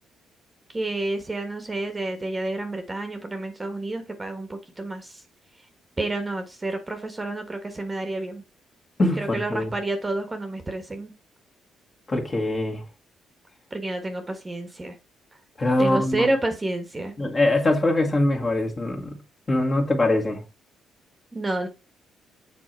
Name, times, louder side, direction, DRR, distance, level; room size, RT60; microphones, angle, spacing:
voice 1, 0.7-5.2 6.0-8.4 9.2-11.1 13.7-14.9 15.8-17.1 21.3-21.7, right 2 dB, 20° right, 1.3 m, -29 dB
voice 2, 12.1-12.8 15.6-16.3 17.2-19.2 19.5-20.4, left 2 dB, 30° left, 2.0 m, -22 dB
7.3 x 3.9 x 4.5 m
cardioid pair, 100°, 0 cm